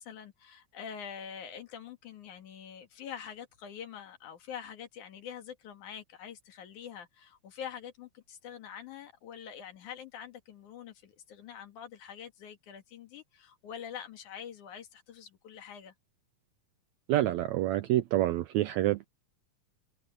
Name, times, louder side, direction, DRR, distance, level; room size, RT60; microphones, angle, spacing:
voice 1, 0.0-15.9, left 8 dB, 65° left, 3.2 m, -45 dB
voice 2, 17.1-19.1, right 14 dB, 80° right, 1.7 m, -27 dB
omnidirectional pair, 3.8 m